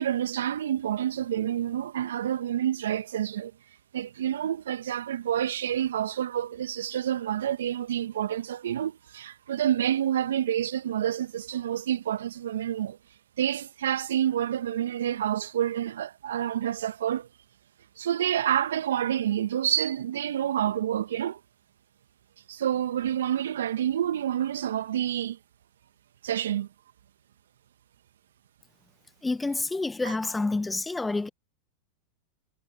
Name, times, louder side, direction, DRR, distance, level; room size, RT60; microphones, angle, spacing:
voice 1, 0.0-3.5 3.9-13.0 13.4-17.3 18.0-21.4 22.5-25.4 26.2-26.7 30.0-30.1, right 10 dB, 75° right, 1.7 m, -28 dB
voice 2, 29.2-31.3, left 3 dB, 10° left, 0.8 m, -28 dB
hypercardioid pair, 95°, 0 cm